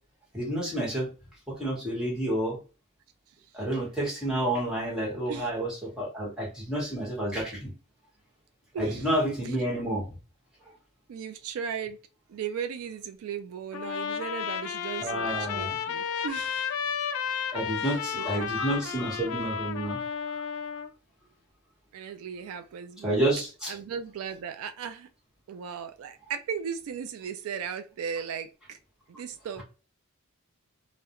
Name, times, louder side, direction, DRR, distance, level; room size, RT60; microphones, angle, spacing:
voice 1, 0.3-1.1 1.5-2.6 3.5-7.7 8.8-10.1 15.0-15.8 17.5-20.0 23.0-23.7, right 1 dB, 5° right, 1.1 m, -29 dB
voice 2, 8.7-9.1 9.4-9.6 11.1-12.0 12.3-16.8 17.8-18.8 21.9-23.2 23.7-25.1 25.5-28.8 29.1-29.6, right 7 dB, 70° right, 0.3 m, -37 dB
Trumpet, 13.7-20.9, left 7 dB, 70° left, 0.3 m, -32 dB
2.3 x 2.1 x 2.8 m
head